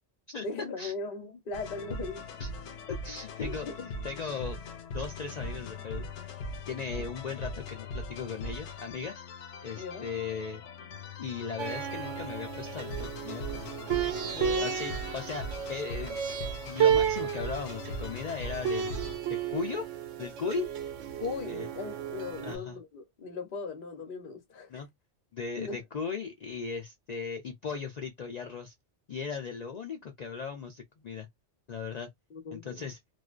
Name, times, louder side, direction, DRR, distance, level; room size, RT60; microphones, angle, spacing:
voice 1, 0.4-2.2 2.6-2.8 3.4-3.9 9.8-10.1 14.2-14.8 21.2-24.7 25.6-25.8 32.3-32.9, left 4 dB, 50° left, 0.8 m, -38 dB
sound 1, 1.5-19.2, left 2 dB, 90° left, 0.9 m, -40 dB
voice 2, 2.9-3.7 4.0-4.6 4.9-6.1 6.7-9.2 9.6-10.6 11.2-14.1 14.6-16.2 16.6-19.9 20.2-20.7 21.5-21.7 22.4-22.8 24.7-24.9 25.3-28.7 29.1-31.3 31.7-32.1 32.5-33.0, left 5 dB, 70° left, 0.4 m, -37 dB
sound 2, 11.6-22.5, right 8 dB, 90° right, 0.9 m, -32 dB
2.5 x 2.1 x 2.3 m
omnidirectional pair, 1.2 m